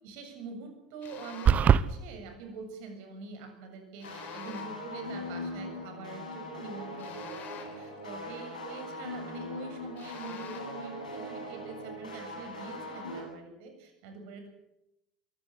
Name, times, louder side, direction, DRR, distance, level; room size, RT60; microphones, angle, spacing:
voice 1, 0.0-14.5, right 4 dB, 60° right, 6 dB, 7.2 m, -45 dB
sound 1, 1.0-1.7 4.0-4.9 7.0-8.0 10.0-10.8, left 7 dB, 50° left, 4.9 m, -47 dB
sound 2, 1.5-1.9, right 8 dB, 40° right, 1.0 m, -20 dB
sound 3, 4.0-13.2, left 1 dB, 85° left, 7.9 m, -40 dB
22.5 x 16.5 x 8.3 m, 0.88 s
hypercardioid pair, 75°, 4 cm